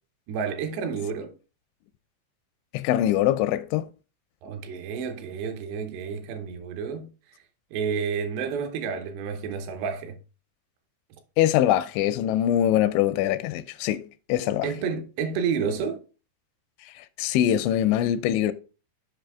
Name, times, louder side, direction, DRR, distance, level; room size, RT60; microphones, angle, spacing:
voice 1, 0.3-1.3 4.4-7.1 7.7-10.2 14.6-16.0, right 6 dB, 75° right, 2.9 m, -30 dB
voice 2, 2.7-3.9 11.4-14.7 17.2-18.5, left 12 dB, 85° left, 2.9 m, -23 dB
8.2 x 5.2 x 3.4 m
omnidirectional pair, 5.3 m